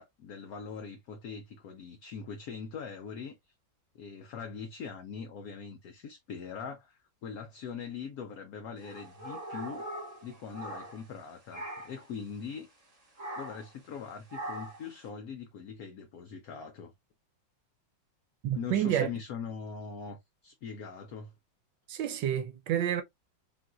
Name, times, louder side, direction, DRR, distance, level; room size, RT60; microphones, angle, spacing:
voice 1, 0.0-3.4 3.9-9.8 10.2-12.7 13.4-16.9 18.6-21.3, left 6 dB, 70° left, 0.9 m, -42 dB
sound 1, 8.8-11.2 11.5-12.1 13.2-13.7 14.3-14.9, right 1 dB, 25° right, 1.0 m, -41 dB
voice 2, 18.4-19.1 21.9-23.0, right 10 dB, 75° right, 1.3 m, -29 dB
3.7 x 2.6 x 2.4 m
omnidirectional pair, 2.1 m